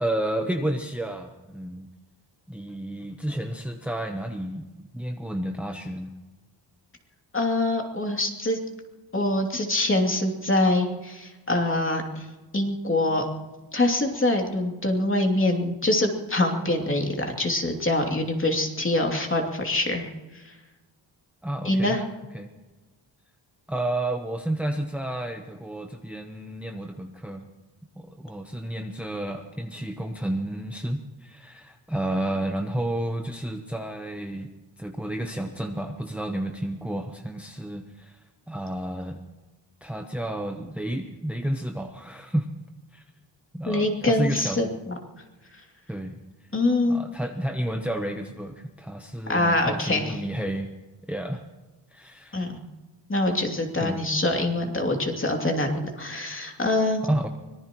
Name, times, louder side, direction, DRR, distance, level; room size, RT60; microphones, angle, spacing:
voice 1, 0.0-1.9 2.5-6.1 21.4-22.0 22.3-22.5 23.7-27.5 28.0-34.5 34.8-39.2 39.8-42.5 42.9-43.0 43.5-44.7 45.9-46.2 46.9-50.7 51.1-51.4 51.9-52.5 53.8-54.0 57.0-57.3, right 1 dB, 5° right, 4 dB, 0.9 m, -31 dB
voice 2, 7.3-8.6 9.1-12.3 12.5-13.2 13.7-20.1 20.4-20.5 21.6-22.0 43.7-45.0 46.5-47.0 49.3-50.1 52.3-52.5 53.1-57.0, left 2 dB, 25° left, 2 dB, 2.8 m, -24 dB
24.5 x 19.0 x 3.1 m, 1.2 s
wide cardioid pair, 110°, 45 cm